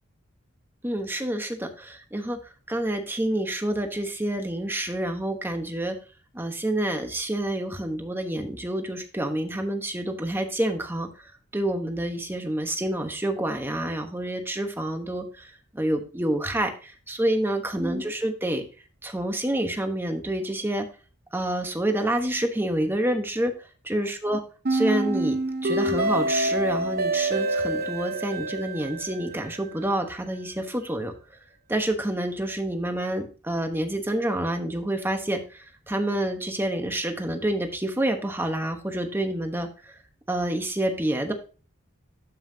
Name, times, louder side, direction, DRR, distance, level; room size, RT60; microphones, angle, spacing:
voice 1, 0.8-2.4 2.7-6.0 6.3-11.1 11.5-15.5 15.7-18.6 19.0-20.8 21.3-23.5 23.9-24.4 24.7-31.1 31.7-39.7 40.3-41.3, right 1 dB, 10° right, 5 dB, 1.1 m, -28 dB
sound 1, 24.6-29.7, right 2 dB, 50° right, 1.0 m, -27 dB
12.5 x 5.7 x 2.8 m, 0.35 s
head